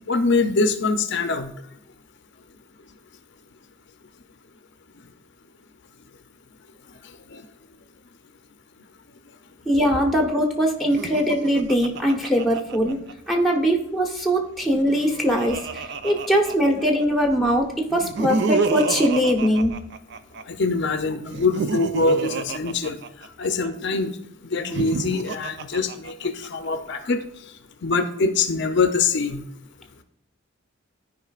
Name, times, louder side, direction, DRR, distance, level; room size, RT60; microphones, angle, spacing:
voice 1, 0.1-1.5 7.3-7.4 20.5-23.0 23.4-24.1 24.5-27.2 27.8-29.4, left 4 dB, 55° left, 8 dB, 0.5 m, -23 dB
voice 2, 9.7-13.0 13.3-19.7, equal, ahead, 1 dB, 1.0 m, -21 dB
Laughter, 10.8-13.3 14.6-17.0 17.9-20.4 21.3-23.7 24.5-26.5, right 4 dB, 55° right, 0.4 m, -29 dB
13.5 x 4.9 x 2.4 m, 0.78 s
head